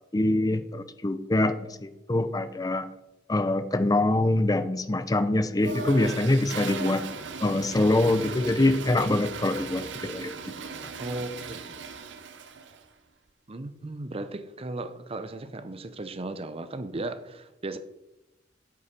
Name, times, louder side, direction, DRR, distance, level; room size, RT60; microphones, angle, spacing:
voice 1, 0.1-2.9 3.3-7.0 7.4-10.5, left 2 dB, 20° left, 0.5 m, -24 dB
Toilet flush, 5.6-12.8, right 5 dB, 75° right, 0.8 m, -37 dB
voice 2, 11.0-11.9 13.5-17.8, right 2 dB, 30° right, 0.7 m, -36 dB
8.5 x 7.2 x 5.2 m
head